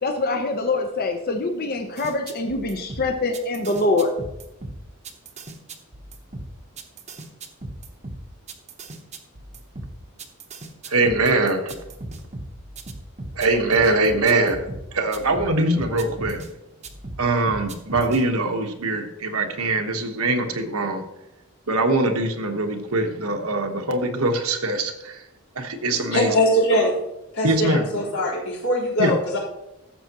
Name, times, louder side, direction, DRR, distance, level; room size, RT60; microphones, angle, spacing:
voice 1, 0.0-4.1, left 2 dB, 45° left, 4 dB, 0.8 m, -24 dB
sound 1, 2.0-16.5 16.8-18.2, right 2 dB, 30° right, 0.9 m, -37 dB
voice 2, 10.9-11.8 13.3-14.7 14.9-16.4 17.2-21.0 21.7-25.2 25.5-26.3 27.4-27.9 29.0-29.1, right 2 dB, 85° right, 4 dB, 1.3 m, -22 dB
voice 3, 26.1-27.0 27.3-29.4, equal, 90° left, -6 dB, 4.0 m, -21 dB
14.5 x 7.1 x 3.0 m, 0.90 s
head